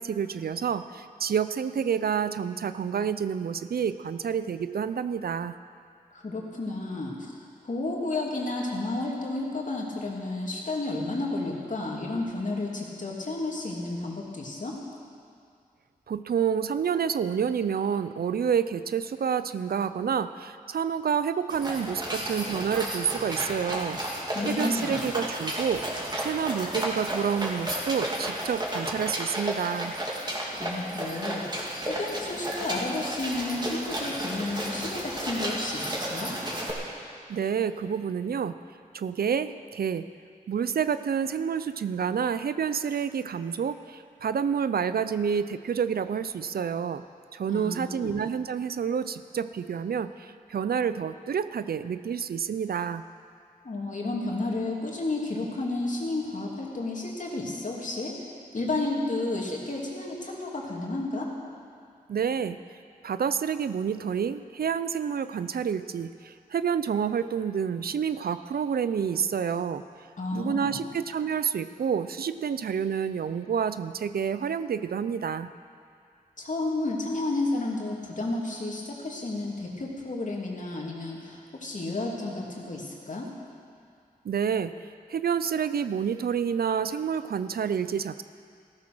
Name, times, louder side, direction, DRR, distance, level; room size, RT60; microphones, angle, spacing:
voice 1, 0.0-5.5 16.1-25.9 26.2-29.9 37.3-38.6 38.9-40.1 40.5-47.0 47.3-53.0 62.1-62.6 63.0-69.8 70.3-75.5 84.2-88.2, right 7 dB, 80° right, 12 dB, 0.5 m, -29 dB
voice 2, 6.1-7.1 7.6-14.7 24.3-25.0 30.6-36.3 47.5-48.3 53.6-58.1 58.5-61.3 70.2-70.9 76.4-83.3, left 2 dB, 55° left, -2 dB, 2.8 m, -32 dB
sound 1, 21.5-36.7, right 1 dB, 30° right, 3.0 m, -33 dB
14.5 x 13.5 x 6.2 m, 2.3 s
wide cardioid pair, 70°, 16 cm